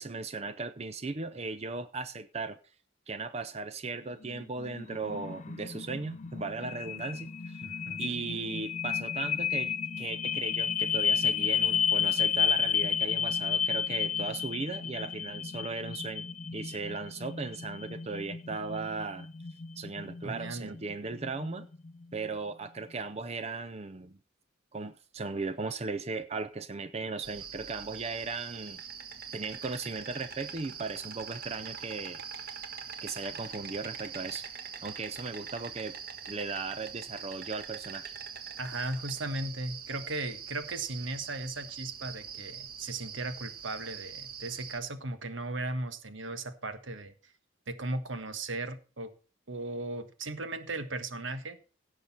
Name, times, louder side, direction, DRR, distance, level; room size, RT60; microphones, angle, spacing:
voice 1, 0.0-2.6 3.1-7.6 8.0-16.2 16.5-19.3 19.8-21.7 22.1-24.2 24.7-28.8 29.3-32.5 33.0-34.5 34.8-35.9 36.3-38.1, right 4 dB, 30° right, 0.5 m, -37 dB
sound 1, 4.2-22.3, left 7 dB, 35° left, 0.5 m, -32 dB
voice 2, 7.6-8.0 20.2-20.7 38.6-47.1 47.7-49.1 49.5-51.6, right 2 dB, 70° right, 1.4 m, -37 dB
Insect, 27.2-44.8, right 7 dB, 50° right, 1.4 m, -43 dB
17.0 x 6.6 x 4.2 m
head